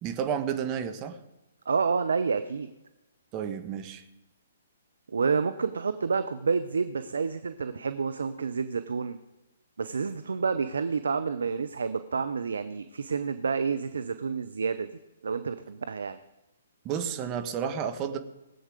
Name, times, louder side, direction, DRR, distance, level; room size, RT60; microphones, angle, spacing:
voice 1, 0.0-1.2 3.3-4.0 16.8-18.2, right 8 dB, 30° right, 8 dB, 1.3 m, -31 dB
voice 2, 1.7-2.7 5.1-9.2 9.8-14.9 15.2-16.2, right 5 dB, 70° right, 11 dB, 0.7 m, -29 dB
19.0 x 7.9 x 5.1 m, 0.99 s
figure-of-eight pair, 125°, 0 cm